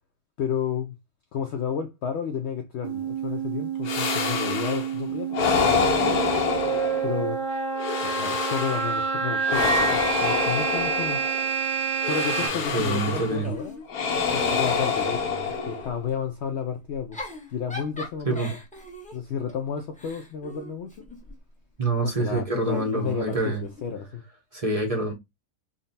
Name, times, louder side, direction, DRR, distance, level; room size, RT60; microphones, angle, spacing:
voice 1, 0.4-0.9 1.3-6.2 7.0-7.5 8.0-11.3 12.0-13.8 14.3-17.2 17.5-18.6 19.1-21.0 22.0-24.2, left 7 dB, 90° left, 0.5 m, -32 dB
sound 1, 2.8-12.5, right 6 dB, 90° right, 1.7 m, -28 dB
sound 2, 3.9-4.9 5.3-7.3 7.8-9.0 9.5-11.5 12.0-13.4 13.9-16.0, left 5 dB, 75° left, 1.3 m, -26 dB
Giggle / Chuckle chortle, 12.5-14.1 14.5-16.0 16.9-21.4 22.5-23.9, left 1 dB, 10° left, 0.6 m, -41 dB
voice 2, 12.7-13.5 18.3-18.5 21.8-23.6 24.5-25.1, right 2 dB, 40° right, 0.5 m, -26 dB
3.8 x 2.1 x 3.9 m
omnidirectional pair, 1.7 m